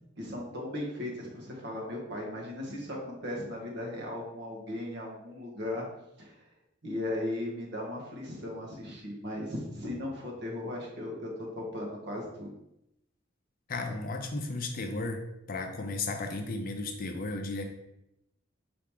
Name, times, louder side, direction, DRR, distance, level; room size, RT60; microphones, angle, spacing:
voice 1, 0.2-5.9 6.2-6.4 6.8-12.5, left 1 dB, 65° right, -1 dB, 1.1 m, -37 dB
voice 2, 13.7-15.2 15.5-17.6, left 3 dB, 50° left, 5 dB, 0.5 m, -34 dB
4.8 x 3.0 x 3.5 m, 0.84 s
head